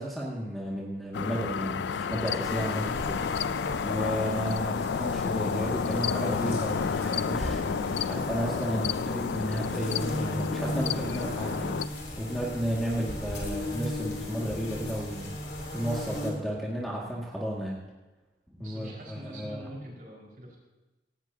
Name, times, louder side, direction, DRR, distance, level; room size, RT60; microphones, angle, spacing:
voice 1, 0.0-3.2 3.8-11.8 12.2-15.3 15.7-17.8 18.6-19.7, equal, ahead, -5 dB, 2.1 m, -33 dB
sound 1, 1.1-11.9, left 6 dB, 80° left, 0.4 m, -31 dB
sound 2, 2.4-16.3, left 1 dB, 60° left, 3.4 m, -37 dB
voice 2, 18.6-20.6, equal, 50° right, -2 dB, 5.2 m, -44 dB
18.0 x 17.0 x 2.9 m, 1.1 s
head